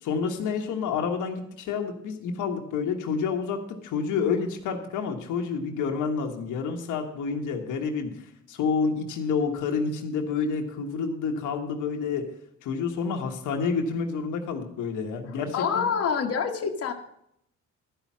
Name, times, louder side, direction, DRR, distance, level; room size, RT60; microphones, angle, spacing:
voice 1, 0.0-8.1 8.5-12.3 12.6-15.9, left 5 dB, 85° left, 3 dB, 1.4 m, -29 dB
voice 2, 15.3-16.9, left 6 dB, 50° left, 3 dB, 1.3 m, -27 dB
12.0 x 5.7 x 7.3 m, 0.75 s
cardioid pair, 90°, 30 cm